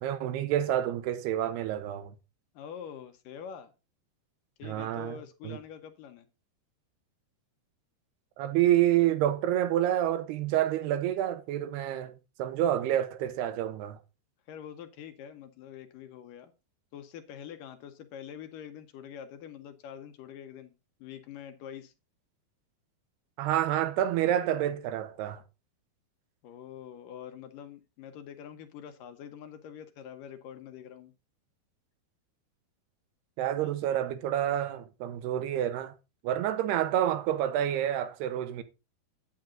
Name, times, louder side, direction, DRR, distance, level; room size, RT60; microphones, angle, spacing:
voice 1, 0.0-2.1 4.6-5.2 5.4-5.6 8.4-14.0 23.4-25.4 33.4-35.9 36.2-38.6, right 12 dB, 85° right, 3.1 m, -28 dB
voice 2, 2.5-3.7 4.6-6.3 14.5-16.5 16.9-20.7 21.0-21.9 26.4-31.1 33.6-33.8, left 8 dB, 70° left, 2.3 m, -45 dB
9.1 x 9.0 x 3.8 m
omnidirectional pair, 4.6 m